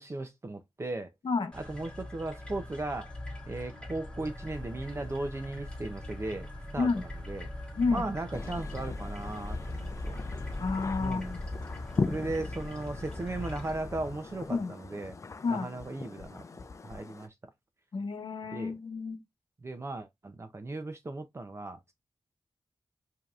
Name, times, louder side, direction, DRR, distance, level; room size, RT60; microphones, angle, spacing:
voice 1, 0.0-1.1 1.5-3.1 3.5-6.5 6.7-7.5 7.9-9.8 10.0-10.2 11.0-11.3 12.1-15.2 15.5-16.4 16.8-17.3 18.5-18.7 19.6-21.9, right 2 dB, 30° right, 0.5 m, -37 dB
sound 1, 1.5-13.8, left 1 dB, 10° left, 1.4 m, -42 dB
sound 2, 4.2-14.6, equal, 45° right, 1.3 m, -49 dB
sound 3, 8.3-17.3, left 4 dB, 35° left, 0.4 m, -39 dB
voice 2, 10.6-11.4 14.5-14.7 15.4-15.7 17.9-19.2, left 4 dB, 65° left, 0.8 m, -30 dB
5.0 x 2.8 x 2.4 m
wide cardioid pair, 150°, 9 cm